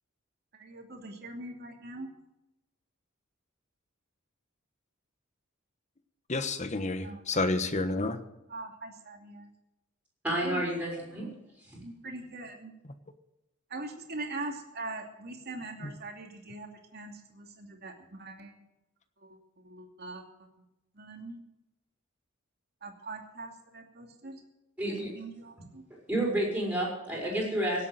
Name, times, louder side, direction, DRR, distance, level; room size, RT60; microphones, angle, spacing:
voice 1, 0.6-2.1 7.0-7.4 8.5-9.5 10.4-10.6 11.8-12.7 13.7-18.5 19.2-19.3 19.6-20.2 21.0-21.4 22.8-24.4 24.9-25.8, right 2 dB, 50° right, 3 dB, 2.7 m, -42 dB
voice 2, 6.3-8.2 15.8-15.9, left 2 dB, 35° left, 10 dB, 1.2 m, -30 dB
voice 3, 10.2-11.3 11.7-11.8 24.8-25.1 25.6-25.7 26.1-27.9, right 1 dB, 5° right, -3 dB, 6.2 m, -30 dB
17.5 x 8.4 x 7.7 m, 0.93 s
head